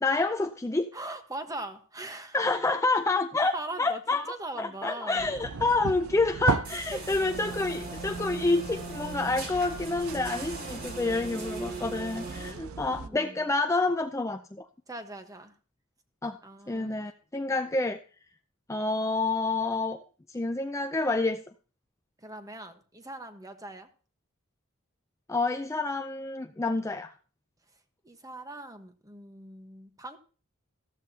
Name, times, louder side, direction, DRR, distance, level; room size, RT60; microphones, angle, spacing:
voice 1, 0.0-0.9 2.3-14.7 16.2-16.4 16.7-18.0 18.7-20.0 20.3-21.4 25.3-27.1, left 3 dB, 15° left, 7 dB, 0.5 m, -28 dB
voice 2, 0.9-2.4 3.5-5.3 6.7-7.1 10.5-11.4 11.9-13.5 14.9-15.5 16.4-16.9 22.2-23.9 28.0-30.2, right 2 dB, 15° right, 7 dB, 1.2 m, -41 dB
sound 1, 5.2-13.1, right 5 dB, 90° right, 0.7 m, -37 dB
sound 2, 6.6-12.5, right 3 dB, 45° right, 3.3 m, -39 dB
14.0 x 14.0 x 2.8 m, 0.37 s
head